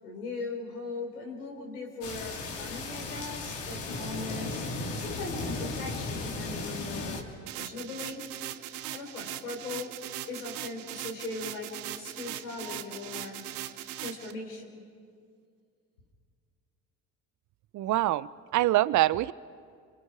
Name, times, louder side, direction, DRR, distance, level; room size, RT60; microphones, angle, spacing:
voice 1, 0.0-7.2 7.5-8.3 8.9-9.9 10.3-13.4 14.0-14.8, left 3 dB, 85° left, 0 dB, 4.0 m, -39 dB
sound 1, 2.0-7.2, left 3 dB, 65° left, 2.6 m, -35 dB
sound 2, 7.5-14.3, right 14 dB, 75° right, 0.9 m, -40 dB
voice 2, 17.7-19.3, right 16 dB, 40° right, 19 dB, 0.6 m, -25 dB
29.5 x 25.0 x 4.8 m, 2.2 s
hypercardioid pair, 60°, 44 cm